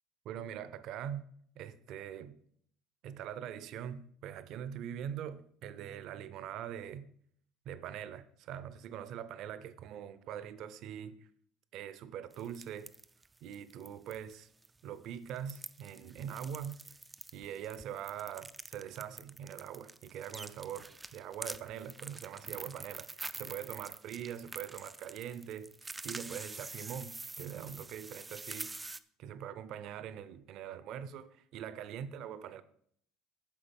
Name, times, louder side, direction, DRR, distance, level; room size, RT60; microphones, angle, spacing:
voice 1, 0.2-1.3 1.6-2.3 3.0-7.1 7.7-11.3 11.7-12.9 13.4-14.5 14.8-16.8 17.3-28.7 29.2-32.6, right 9 dB, 50° right, 0.6 m, -43 dB
sound 1, 12.3-14.3 14.6-14.7 15.2-29.0, right 3 dB, 10° right, 0.3 m, -46 dB
10.0 x 6.7 x 5.3 m
cardioid pair, 165°, 0 cm